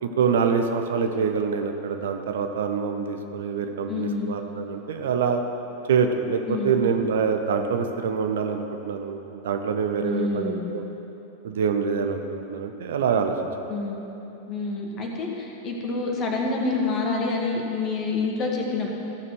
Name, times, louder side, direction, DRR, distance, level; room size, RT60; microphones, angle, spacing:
voice 1, 0.0-5.4 5.9-10.8 11.4-13.4, right 6 dB, 60° right, 6 dB, 0.8 m, -25 dB
voice 2, 3.9-4.4 6.5-6.8 10.0-10.7 13.7-14.0 14.5-18.9, left 3 dB, 30° left, 0 dB, 1.9 m, -27 dB
14.5 x 6.8 x 6.3 m, 3.0 s
figure-of-eight pair, 90°, 0 cm